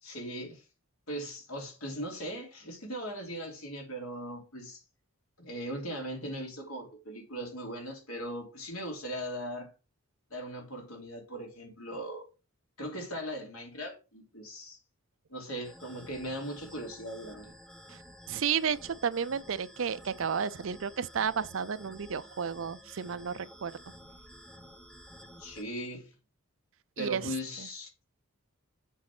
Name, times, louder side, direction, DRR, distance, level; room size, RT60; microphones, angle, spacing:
voice 1, 0.0-0.6 1.1-4.8 5.4-9.7 10.3-12.3 12.8-14.8 15.3-17.5 25.4-26.1 27.0-27.9, equal, 80° left, 3.3 m, -39 dB
sound 1, 15.6-25.6, equal, 5° left, 0.9 m, -52 dB
voice 2, 18.3-23.7 27.0-27.7, right 7 dB, 65° right, 0.5 m, -32 dB
7.4 x 4.2 x 6.0 m
head